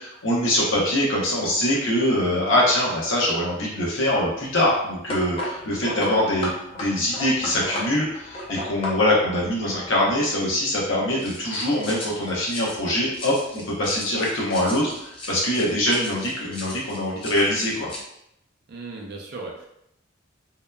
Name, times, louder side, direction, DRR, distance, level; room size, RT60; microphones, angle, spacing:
voice 1, 0.0-17.9, left 1 dB, 75° left, -4 dB, 0.8 m, -23 dB
sound 1, 4.2-10.3 11.2-18.0, left 1 dB, 25° left, 0.4 m, -36 dB
voice 2, 6.0-6.3 15.5-15.7 18.7-19.7, right 3 dB, 50° right, 0 dB, 0.4 m, -37 dB
2.8 x 2.1 x 2.2 m, 0.78 s
head